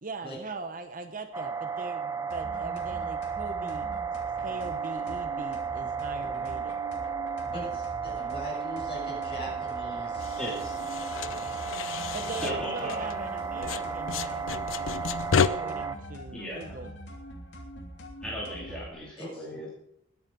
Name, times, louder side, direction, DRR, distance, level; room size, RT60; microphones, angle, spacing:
voice 1, 0.0-3.9 4.4-6.8 12.1-15.0 15.4-16.9, right 3 dB, 45° right, 7 dB, 0.9 m, -40 dB
sound 1, 1.3-16.0, right 6 dB, 15° right, 0.7 m, -34 dB
sound 2, 2.3-18.9, right 1 dB, 65° left, 3.0 m, -44 dB
voice 2, 7.4-10.4 12.4-12.9 19.2-19.6, right 1 dB, 30° left, -4 dB, 7.4 m, -41 dB
sound 3, 10.2-13.3 13.6-15.5, left 6 dB, 85° left, 0.6 m, -31 dB
voice 3, 10.4-10.8 12.4-13.2 13.5-13.9 16.3-16.8 18.2-19.7, equal, 5° left, -6 dB, 2.7 m, -37 dB
21.5 x 7.3 x 5.3 m, 0.77 s
head